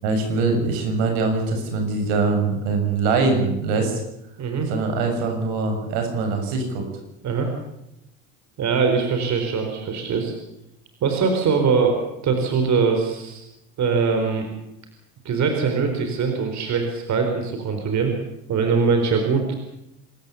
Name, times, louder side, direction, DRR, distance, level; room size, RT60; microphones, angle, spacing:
voice 1, 0.0-4.0 4.7-6.9, right 3 dB, 75° right, 5 dB, 7.0 m, -23 dB
voice 2, 4.4-4.7 7.2-7.5 8.6-10.3 11.0-12.0 12.2-13.4 13.8-14.5 15.2-18.1 18.5-19.6, right 5 dB, 45° right, 5 dB, 4.6 m, -22 dB
26.5 x 14.0 x 8.5 m, 0.85 s
supercardioid pair, 90°, 39 cm